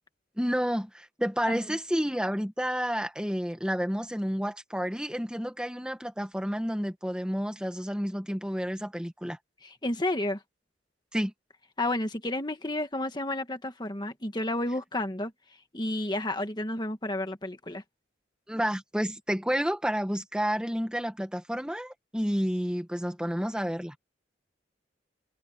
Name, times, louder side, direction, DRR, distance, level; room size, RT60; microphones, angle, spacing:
voice 1, 0.4-9.4 11.1-11.3 18.5-24.0, equal, 5° right, 1.8 m, -30 dB
voice 2, 9.6-10.4 11.8-15.3 15.7-17.8, left 1 dB, 25° left, 1.6 m, -31 dB
head